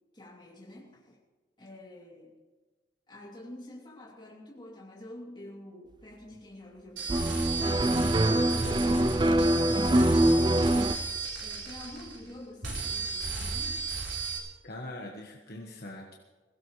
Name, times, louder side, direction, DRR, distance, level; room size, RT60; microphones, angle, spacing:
voice 1, 0.1-1.2 1.6-2.4 3.1-13.9, left 1 dB, 25° left, -3 dB, 2.9 m, -47 dB
sound 1, 7.0-12.3 12.6-14.4, right 4 dB, 70° right, 3.9 m, -34 dB
sound 2, 7.1-10.9, right 1 dB, 20° right, 0.4 m, -24 dB
voice 2, 8.4-8.8 14.6-16.2, left 1 dB, 50° left, 0 dB, 1.4 m, -42 dB
22.0 x 16.0 x 3.2 m, 1.3 s
head